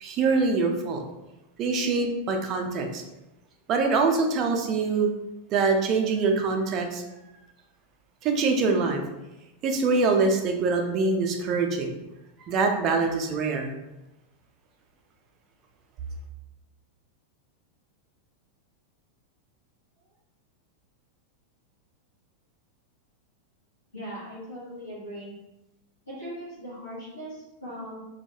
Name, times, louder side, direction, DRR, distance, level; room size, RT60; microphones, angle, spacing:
voice 1, 0.0-1.0 1.6-3.0 3.7-5.1 5.5-7.0 8.2-9.0 9.6-11.9 12.5-13.7, right 4 dB, 35° right, 3 dB, 0.4 m, -24 dB
voice 2, 23.9-25.3 26.1-28.0, equal, 85° left, -10 dB, 0.7 m, -39 dB
2.2 x 2.2 x 2.8 m, 0.96 s
figure-of-eight pair, 90°, 0 cm